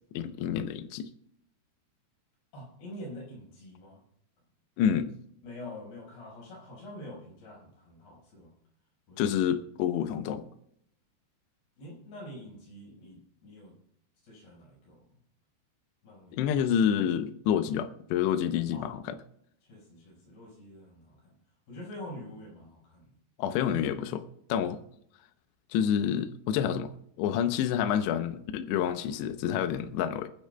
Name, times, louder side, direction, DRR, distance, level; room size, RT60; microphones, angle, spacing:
voice 1, 0.1-1.1 4.8-5.1 9.2-10.5 16.3-19.2 23.4-24.2 24.5-24.8 25.7-26.9 27.2-30.3, left 9 dB, 80° left, 9 dB, 2.5 m, -28 dB
voice 2, 2.5-4.0 5.4-8.5 9.1-9.4 11.8-13.8 14.2-15.2 16.0-16.5 18.7-18.9 19.7-21.4 21.7-23.1, left 1 dB, 55° left, -4 dB, 7.0 m, -46 dB
27.0 x 10.0 x 2.3 m, 0.71 s
omnidirectional pair, 5.8 m